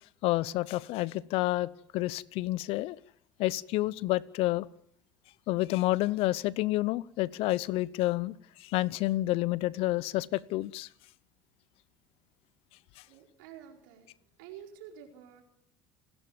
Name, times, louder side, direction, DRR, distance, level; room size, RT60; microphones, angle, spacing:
voice 1, 0.2-3.0 3.4-4.7 5.5-8.3 8.6-10.9, left 17 dB, 65° left, 20 dB, 0.8 m, -29 dB
voice 2, 13.1-14.1 14.4-15.4, right 9 dB, 80° right, 2 dB, 4.8 m, -49 dB
28.5 x 12.0 x 9.3 m, 0.73 s
hypercardioid pair, 80°, 11 cm